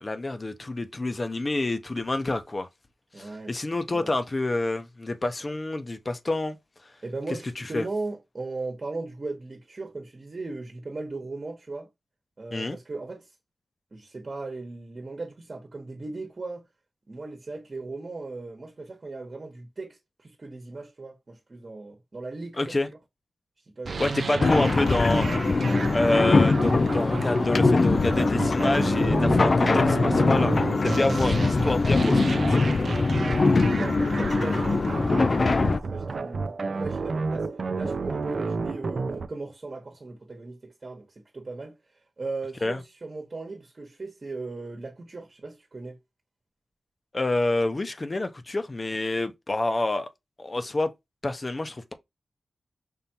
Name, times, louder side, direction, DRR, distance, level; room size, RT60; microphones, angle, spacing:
voice 1, 0.0-2.7 3.2-6.6 7.6-7.9 12.5-12.8 22.6-22.9 24.0-25.3 25.9-30.5 30.8-32.4 42.6-42.8 47.1-50.1 50.4-50.9 51.2-51.9, left 2 dB, 35° left, 0.8 m, -28 dB
voice 2, 3.1-4.1 7.0-11.9 12.4-13.3 13.9-16.7 17.1-23.0 23.8-24.1 29.4-29.7 31.0-31.1 32.8-37.5 37.7-41.8 42.2-46.0, right 3 dB, 45° right, 1.2 m, -38 dB
sound 1, 23.8-39.3, right 4 dB, 65° right, 0.5 m, -31 dB
sound 2, 24.4-35.8, left 3 dB, 55° left, 0.4 m, -22 dB
5.5 x 3.3 x 2.9 m
cardioid pair, 55°, 0 cm